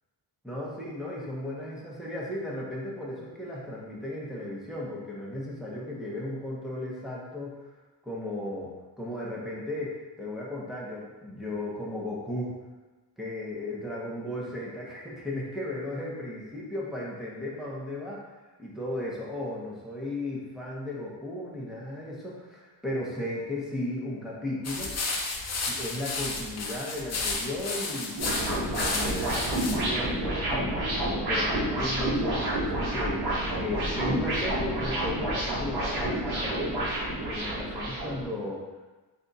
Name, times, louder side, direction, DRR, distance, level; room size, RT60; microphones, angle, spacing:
voice 1, 0.4-7.6 8.0-12.6 13.2-18.3 18.6-24.9 25.7-36.9 37.3-38.7, left 1 dB, ahead, -6 dB, 0.7 m, -35 dB
sound 1, 24.6-29.8, left 3 dB, 35° left, 0.5 m, -32 dB
sound 2, 28.2-38.2, right 1 dB, 55° right, 1.2 m, -29 dB
3.5 x 2.6 x 3.8 m, 1.2 s
wide cardioid pair, 150°, 45 cm